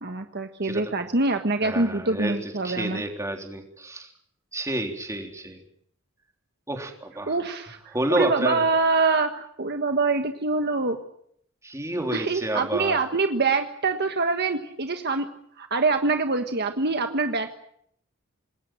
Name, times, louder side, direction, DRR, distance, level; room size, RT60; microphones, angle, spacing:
voice 1, 0.0-3.0 7.3-11.0 12.1-15.3 15.6-17.5, right 3 dB, 50° right, 6 dB, 1.5 m, -25 dB
voice 2, 0.6-1.0 1.6-4.1 4.5-5.6 6.7-7.4 7.9-8.6 11.6-13.0, right 1 dB, 15° right, 3 dB, 3.7 m, -30 dB
26.5 x 20.5 x 7.6 m, 0.68 s
head